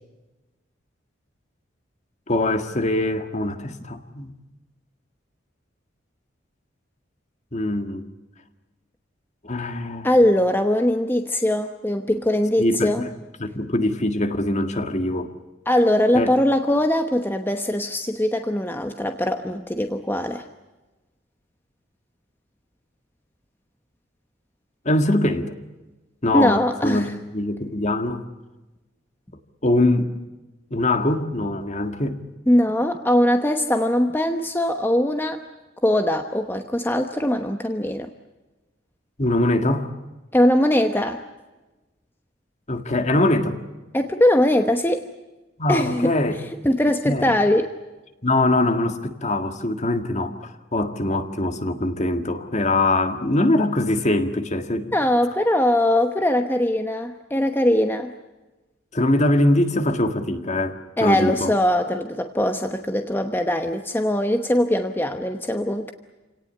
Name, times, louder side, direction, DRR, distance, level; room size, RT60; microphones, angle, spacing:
voice 1, 2.3-4.3 7.5-8.0 9.4-10.1 12.6-13.1 13.4-15.3 16.1-16.3 24.9-25.6 26.2-28.3 29.6-30.1 30.7-32.2 39.2-39.9 42.7-43.6 45.6-46.4 47.1-47.3 48.2-54.9 58.9-61.5, left 1 dB, 35° left, 8 dB, 1.8 m, -22 dB
voice 2, 10.0-13.1 15.7-20.4 26.3-27.1 32.5-35.4 35.8-38.1 40.3-41.2 43.9-45.1 45.7-46.1 46.6-47.7 54.9-58.1 61.0-65.9, left 1 dB, 10° left, 6 dB, 1.0 m, -21 dB
28.0 x 18.0 x 9.9 m, 1.1 s
head